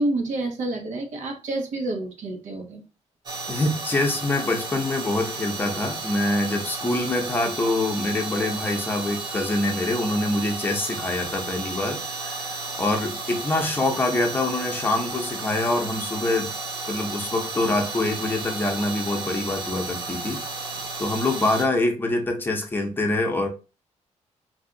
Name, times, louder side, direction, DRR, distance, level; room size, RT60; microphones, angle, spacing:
voice 1, 0.0-2.8, right 2 dB, 85° right, 1.0 m, -28 dB
sound 1, 3.3-21.7, right 3 dB, 35° right, 0.8 m, -33 dB
voice 2, 3.5-16.5 16.9-20.4 21.0-23.5, left 2 dB, 15° left, 0.6 m, -25 dB
2.6 x 2.3 x 3.7 m
wide cardioid pair, 150°, 12 cm